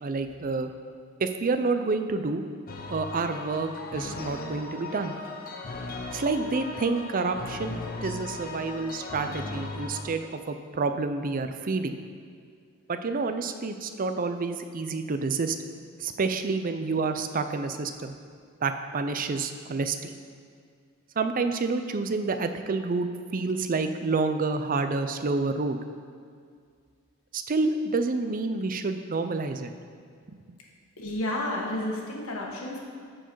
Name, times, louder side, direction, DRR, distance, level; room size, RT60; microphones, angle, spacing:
voice 1, 0.0-0.7 1.2-2.4 2.9-5.1 6.1-12.0 12.9-15.6 16.0-18.2 18.6-20.1 21.2-25.8 27.3-29.7 30.3-30.4, right 3 dB, 40° right, 8 dB, 0.5 m, -28 dB
sound 1, 2.7-10.0, left 2 dB, 45° left, 0.8 m, -37 dB
voice 2, 31.0-32.8, left 1 dB, 75° left, -1 dB, 1.5 m, -31 dB
13.5 x 4.6 x 4.6 m, 2.2 s
head